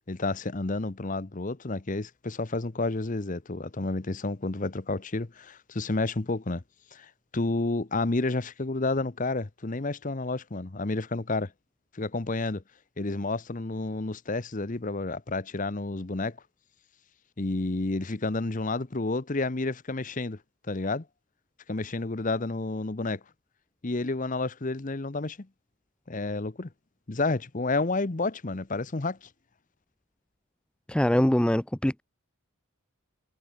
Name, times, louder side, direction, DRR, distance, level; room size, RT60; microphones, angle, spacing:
voice 1, 0.1-6.6 6.9-11.5 11.9-12.6 13.0-16.4 17.4-20.4 20.7-21.0 21.7-23.2 23.8-25.5 26.1-26.7 27.1-29.3, left 2 dB, 35° left, 0.8 m, -30 dB
voice 2, 30.9-32.0, left 1 dB, 5° left, 0.3 m, -23 dB
head